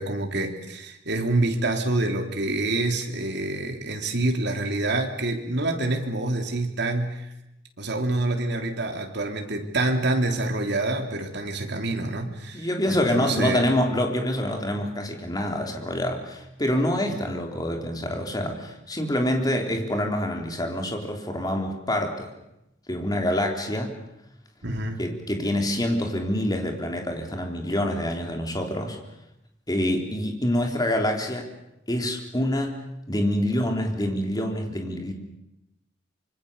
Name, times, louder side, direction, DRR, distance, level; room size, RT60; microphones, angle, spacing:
voice 1, 0.0-7.2 7.8-13.7 24.6-25.0, right 2 dB, 60° right, 3 dB, 3.3 m, -27 dB
voice 2, 12.5-22.3 22.9-23.9 25.0-29.0 29.7-31.5 31.9-32.8 33.1-35.1, left 1 dB, 20° left, 2 dB, 3.5 m, -26 dB
25.5 x 24.5 x 6.8 m, 0.88 s
head